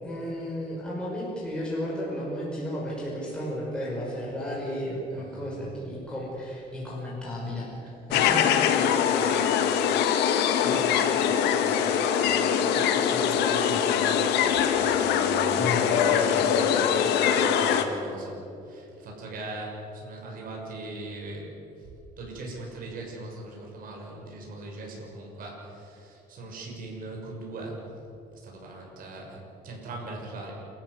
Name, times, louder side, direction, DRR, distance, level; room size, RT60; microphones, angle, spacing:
voice 1, 0.0-8.7 9.0-9.2 15.6-15.8, equal, 5° left, -5 dB, 6.0 m, -33 dB
voice 2, 5.1-5.7 8.7-14.4 14.8-27.8 28.3-30.5, right 2 dB, 55° right, -1 dB, 6.4 m, -40 dB
sound 1, 8.1-17.8, left 8 dB, 85° left, 1.7 m, -23 dB
28.5 x 13.5 x 8.2 m, 2.9 s
cardioid pair, 110°, 17 cm